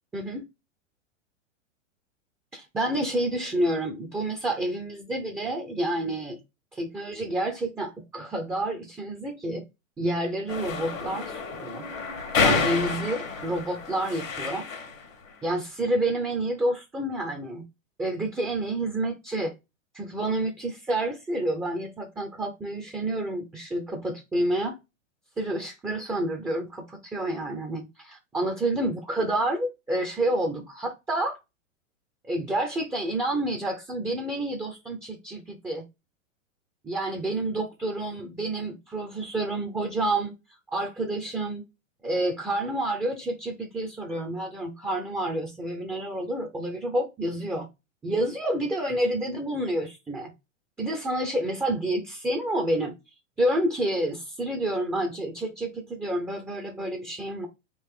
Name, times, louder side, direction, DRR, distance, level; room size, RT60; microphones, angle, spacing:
voice 1, 0.1-0.4 2.5-6.4 6.7-9.6 10.0-11.8 12.4-14.7 15.4-17.6 18.0-19.5 19.9-24.8 25.4-31.4 32.3-35.8 36.8-40.3 40.7-41.6 42.0-47.7 48.0-50.3 50.8-52.9 53.4-57.5, right 1 dB, 5° right, 0.4 m, -29 dB
sound 1, 10.5-15.0, left 4 dB, 80° left, 1.5 m, -29 dB
3.8 x 2.5 x 4.6 m
hypercardioid pair, 125°, 39 cm